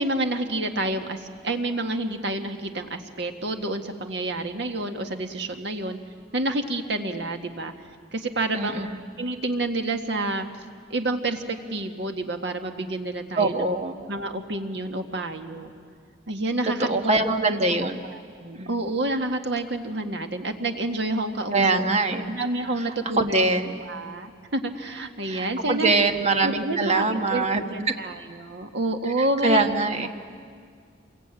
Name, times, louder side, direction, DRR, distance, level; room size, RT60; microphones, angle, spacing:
voice 1, 0.0-6.0 6.3-7.7 8.1-8.9 9.2-10.5 10.9-13.7 14.1-15.7 16.3-17.2 17.7-17.8 18.0-21.8 22.3-23.4 23.8-25.9 26.4-29.8 30.0-30.1, right 2 dB, 70° right, 5 dB, 1.8 m, -29 dB
voice 2, 8.5-9.0 13.4-14.0 16.8-18.1 18.6-18.7 21.5-22.3 23.2-23.8 25.3-27.6 29.4-30.1, right 3 dB, 35° right, 6 dB, 1.5 m, -23 dB
27.0 x 22.5 x 9.1 m, 2.1 s
head